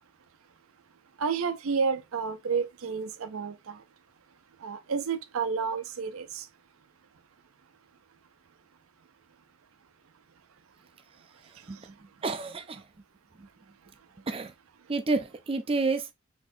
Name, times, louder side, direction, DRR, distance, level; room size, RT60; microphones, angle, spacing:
voice 1, 1.2-3.8 4.6-6.5, right 5 dB, 85° right, 0.6 m, -30 dB
voice 2, 12.2-12.8 13.4-13.5 14.3-14.5 14.9-16.1, right 3 dB, 25° right, 0.5 m, -29 dB
4.3 x 3.5 x 2.6 m
head